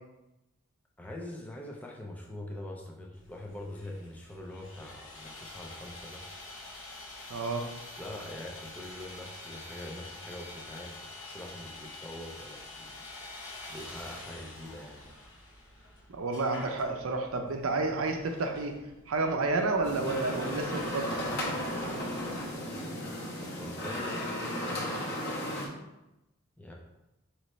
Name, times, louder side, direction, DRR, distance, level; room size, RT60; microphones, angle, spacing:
voice 1, 1.0-6.2 7.9-13.0 13.7-15.0 23.6-24.8 26.6-26.7, left 1 dB, 5° left, -1 dB, 0.5 m, -43 dB
Sawing, 3.1-22.5, left 2 dB, 70° left, 1.0 m, -47 dB
voice 2, 7.3-7.7 16.1-18.7 19.1-21.1, right 3 dB, 85° right, 4 dB, 0.6 m, -30 dB
sound 1, 19.8-25.7, equal, 50° left, 1.1 m, -34 dB
5.3 x 3.1 x 3.1 m, 0.95 s
head